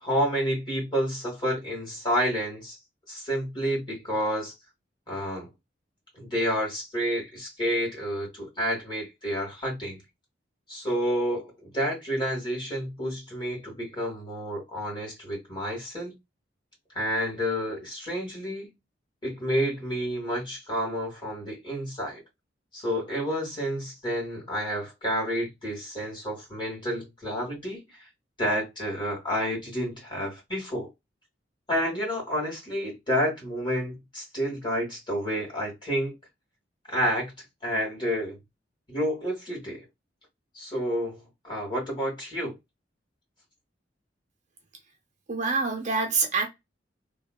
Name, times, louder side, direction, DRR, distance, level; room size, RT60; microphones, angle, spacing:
voice 1, 0.0-2.8 3.1-4.5 5.1-5.5 6.1-10.0 10.7-16.1 17.0-18.7 19.2-22.2 22.7-27.8 28.4-30.9 31.7-36.2 36.9-37.3 37.6-38.4 38.9-39.8 40.6-41.2 41.4-42.5, equal, 25° left, 1.8 m, -29 dB
voice 2, 45.3-46.5, right 4 dB, 40° right, 0.8 m, -26 dB
3.0 x 2.4 x 2.3 m
head